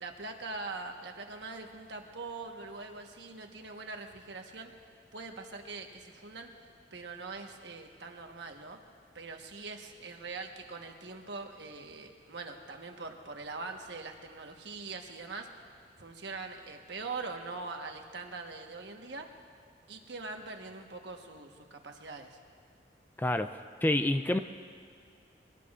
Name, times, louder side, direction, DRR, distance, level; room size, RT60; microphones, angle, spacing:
voice 1, 0.0-4.7 5.1-6.5 6.9-8.8 9.1-15.6 16.0-19.3 19.9-22.4, right 3 dB, 65° right, 3 dB, 1.2 m, -42 dB
voice 2, 23.8-24.4, left 1 dB, 10° left, 9 dB, 0.3 m, -27 dB
23.0 x 17.5 x 2.4 m, 2.2 s
head